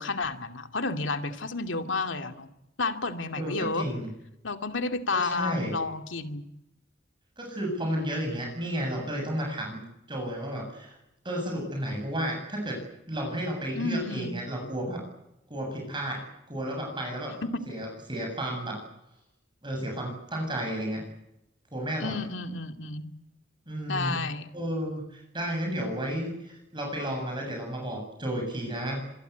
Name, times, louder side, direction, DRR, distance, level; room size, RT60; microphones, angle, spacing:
voice 1, 0.0-2.5 2.8-3.9 4.4-6.4 13.8-14.3 17.4-17.6 22.0-23.1 23.9-24.5, left 3 dB, 80° left, 6 dB, 2.5 m, -31 dB
voice 2, 3.3-4.1 5.2-5.8 7.4-9.8 10.1-11.0 11.2-12.8 13.1-15.0 15.5-17.3 17.7-18.8 19.6-21.0 21.7-22.2 23.7-24.2 24.5-29.1, right 1 dB, 25° right, 2 dB, 7.5 m, -32 dB
26.0 x 22.0 x 8.2 m, 0.86 s
head